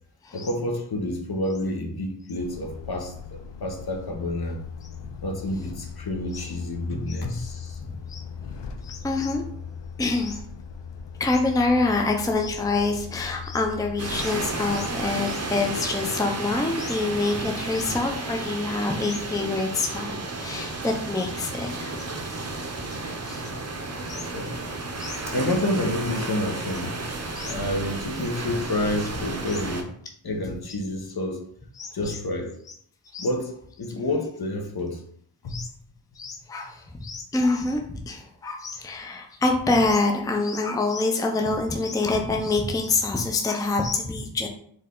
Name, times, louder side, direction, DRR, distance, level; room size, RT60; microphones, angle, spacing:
voice 1, 0.3-3.2 3.6-4.6 5.2-7.8 24.3-24.6 25.3-27.0 27.4-29.9 30.2-31.4 31.9-32.5 33.2-35.0 35.4-35.6, left 1 dB, 60° left, 3 dB, 1.0 m, -29 dB
Truck, 2.4-14.3, left 6 dB, 75° left, 0.6 m, -39 dB
voice 2, 8.8-9.4 10.0-10.4 11.2-20.1 20.4-21.9 23.2-23.5 24.1-24.2 25.0-25.2 27.3-27.5 31.8-32.2 33.1-33.3 35.5-35.7 36.2-44.5, left 3 dB, 10° left, 3 dB, 0.5 m, -26 dB
sound 1, 14.0-29.8, right 2 dB, 35° right, 0.7 m, -32 dB
4.5 x 3.2 x 3.7 m, 0.63 s
wide cardioid pair, 120°, 43 cm